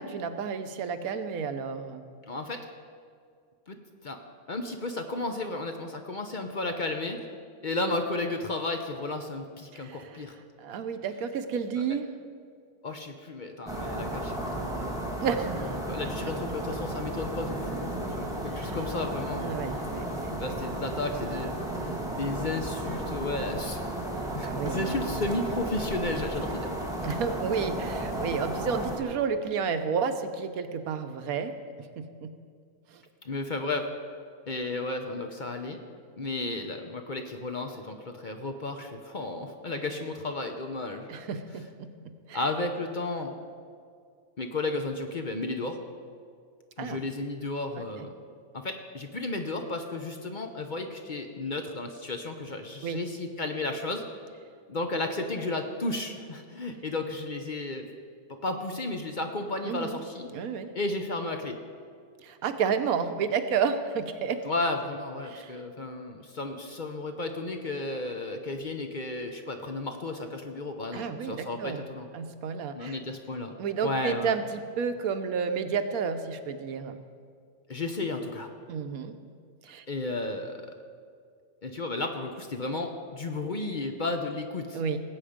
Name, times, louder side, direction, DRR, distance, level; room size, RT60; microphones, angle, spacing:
voice 1, 0.0-2.0 9.7-10.0 10.6-12.1 15.2-15.8 18.5-18.8 19.4-20.6 24.4-25.1 27.0-31.5 32.0-32.3 32.9-33.0 41.1-42.4 46.8-47.0 48.0-48.1 52.8-53.0 59.6-60.0 60.3-60.7 62.2-64.4 65.3-65.6 70.9-71.9 72.1-73.0 73.6-77.0 78.7-79.1 79.6-79.8 84.7-85.2, right 6 dB, 85° right, 8 dB, 1.3 m, -31 dB
voice 2, 2.3-2.6 3.7-4.2 4.5-7.3 7.6-10.4 12.8-15.2 15.6-19.5 20.4-23.8 24.3-26.8 33.2-33.9 34.5-35.8 36.2-41.1 41.5-41.6 42.3-43.4 44.4-45.8 46.8-48.1 48.5-54.0 54.7-57.9 58.4-60.3 60.7-61.6 64.4-72.1 72.8-73.5 73.8-74.3 77.7-78.5 79.9-80.6 81.6-84.8, left 2 dB, 40° left, 5 dB, 0.8 m, -33 dB
sound 1, 13.7-29.0, right 1 dB, 5° right, 1.5 m, -33 dB
18.5 x 8.2 x 5.1 m, 2.2 s
omnidirectional pair, 1.5 m